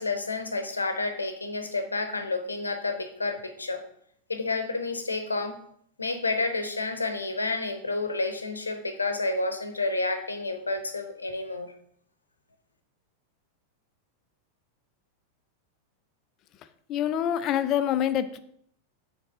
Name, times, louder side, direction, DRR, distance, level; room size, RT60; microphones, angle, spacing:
voice 1, 0.0-3.8 4.3-5.6 6.0-11.7, left 3 dB, 80° left, 8 dB, 0.9 m, -30 dB
voice 2, 16.9-18.4, left 10 dB, 35° left, 12 dB, 0.5 m, -26 dB
5.8 x 4.1 x 5.4 m, 0.66 s
figure-of-eight pair, 90°, 0 cm